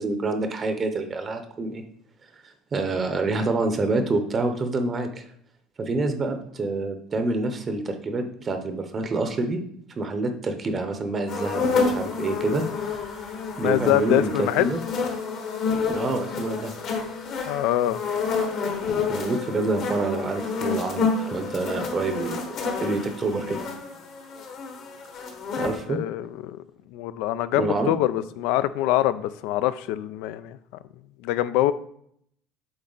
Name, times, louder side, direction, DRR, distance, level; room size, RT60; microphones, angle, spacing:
voice 1, 0.0-1.8 2.7-5.1 5.8-9.6 10.0-14.8 15.9-16.7 19.1-22.4 22.8-23.7 25.6-26.0 27.5-27.9, right 3 dB, 25° right, 6 dB, 0.7 m, -27 dB
sound 1, 11.3-25.8, left 4 dB, 50° left, 1.4 m, -29 dB
voice 2, 13.6-14.7 17.5-18.0 25.9-26.6 26.9-30.6 31.2-31.7, left 13 dB, 80° left, 15 dB, 0.4 m, -24 dB
7.8 x 4.2 x 3.9 m, 0.68 s
cardioid pair, 145°, 0 cm